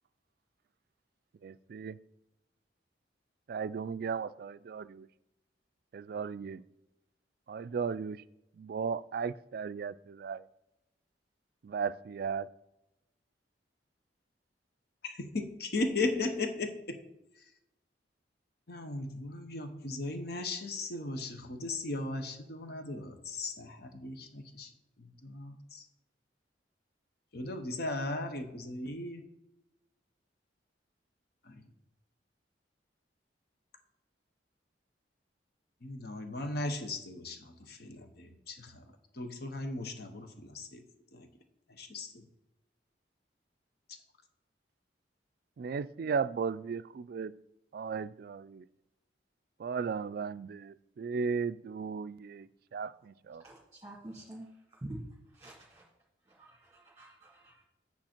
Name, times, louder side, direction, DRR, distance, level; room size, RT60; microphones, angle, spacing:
voice 1, 1.4-2.0 3.5-5.1 5.9-6.6 7.5-8.2 8.5-10.4 11.6-12.5 45.6-47.3 47.7-48.7 49.6-53.5, right 5 dB, 55° right, 0.3 m, -36 dB
voice 2, 15.0-17.0 18.7-24.7 25.0-25.8 27.3-29.2 31.5-31.6 35.8-38.8 39.1-40.8 41.1-41.3 41.7-42.2, left 2 dB, 60° left, 1.0 m, -37 dB
voice 3, 53.4-54.5 54.8-55.0 55.3-55.8 56.3-57.6, right 1 dB, 15° right, 1.7 m, -47 dB
8.8 x 5.7 x 4.4 m
head